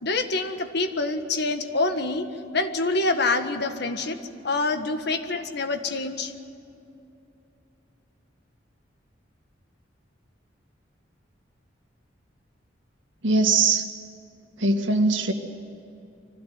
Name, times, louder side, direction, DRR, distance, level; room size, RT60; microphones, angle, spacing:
voice 1, 0.0-2.3 2.5-4.2 4.4-6.3, left 3 dB, 60° left, 7 dB, 1.6 m, -26 dB
voice 2, 13.2-13.9 14.6-15.3, right 3 dB, 80° right, 5 dB, 2.0 m, -21 dB
24.5 x 16.5 x 9.6 m, 2.8 s
head